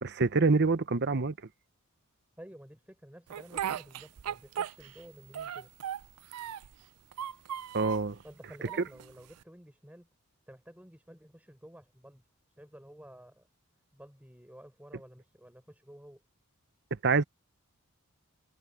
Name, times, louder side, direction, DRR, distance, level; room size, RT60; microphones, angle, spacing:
voice 1, 0.0-1.3 7.7-8.2 17.0-17.2, right 4 dB, 50° right, 0.9 m, -26 dB
voice 2, 2.4-5.7 8.2-10.1 10.5-12.3 12.6-13.5 13.9-16.2, equal, 5° right, 5.9 m, -52 dB
Speech, 3.3-5.1 5.3-6.8 7.1-8.1 8.7-9.4, right 9 dB, 90° right, 0.5 m, -37 dB
head